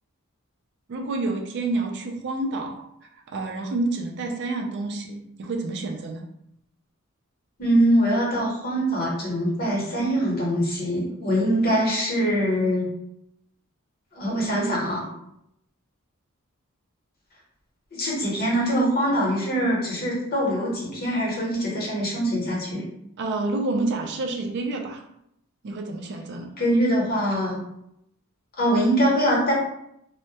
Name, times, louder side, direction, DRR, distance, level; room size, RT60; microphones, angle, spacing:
voice 1, 0.9-2.8 3.3-6.2 23.2-25.0 25.6-26.5, right 2 dB, 55° right, 2 dB, 0.3 m, -28 dB
voice 2, 7.6-12.9 14.1-15.1 17.9-22.8 26.6-27.6 28.6-29.5, equal, 45° left, -4 dB, 0.9 m, -23 dB
2.2 x 2.0 x 2.7 m, 0.77 s
head